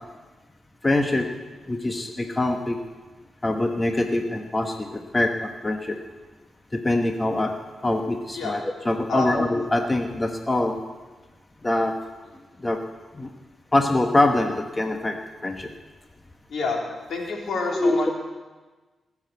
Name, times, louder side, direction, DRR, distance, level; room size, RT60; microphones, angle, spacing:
voice 1, 0.8-1.3 1.7-2.8 3.4-6.0 6.7-7.5 7.8-10.8 11.6-11.9 12.6-12.8 13.2-13.3 13.7-15.2 15.4-15.7 17.7-18.1, left 2 dB, 25° left, 5 dB, 1.1 m, -24 dB
voice 2, 17.1-18.1, left 4 dB, 70° left, -1 dB, 3.2 m, -27 dB
18.5 x 7.3 x 8.0 m, 1.3 s
cardioid pair, 65°, 0 cm